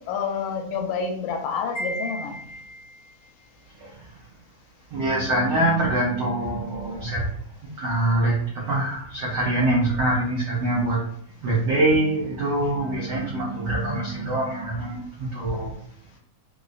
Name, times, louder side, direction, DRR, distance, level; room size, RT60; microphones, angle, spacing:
voice 1, 0.0-2.4, left 5 dB, 85° left, 3 dB, 2.0 m, -28 dB
Wind chime, 1.7-3.1, equal, 40° left, 0.8 m, -35 dB
voice 2, 4.9-7.3 7.8-11.0 11.4-15.7, right 1 dB, 80° right, -5 dB, 1.1 m, -24 dB
4.9 x 2.0 x 2.4 m, 0.64 s
omnidirectional pair, 3.4 m